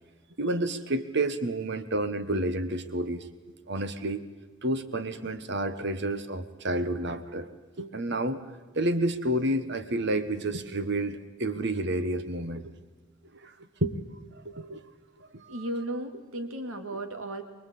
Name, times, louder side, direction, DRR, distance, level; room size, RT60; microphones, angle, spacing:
voice 1, 0.4-3.3 3.7-4.2 4.6-7.5 7.8-8.4 8.7-12.7 13.3-13.5 13.8-14.0 14.3-14.8 15.2-15.6 16.9-17.0, right 1 dB, 50° right, 11 dB, 1.4 m, -30 dB
voice 2, 15.5-17.4, right 1 dB, 75° right, 7 dB, 2.5 m, -35 dB
24.5 x 21.5 x 8.6 m, 1.3 s
head